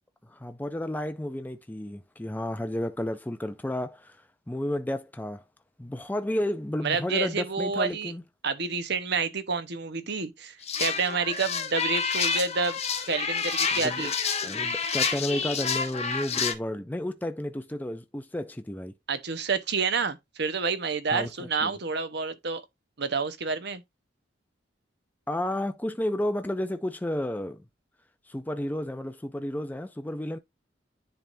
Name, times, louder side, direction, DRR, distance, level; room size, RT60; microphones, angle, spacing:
voice 1, 0.2-5.4 5.8-8.2 13.7-14.1 14.4-18.9 21.1-21.3 21.6-21.7 25.3-27.7 28.3-30.4, left 1 dB, 10° left, 0.5 m, -32 dB
voice 2, 6.8-8.1 8.4-12.8 13.1-14.1 19.1-22.6 23.0-23.8, right 4 dB, 65° right, 1.0 m, -29 dB
sound 1, 10.6-16.5, left 6 dB, 35° left, 1.0 m, -29 dB
10.5 x 3.5 x 2.6 m
head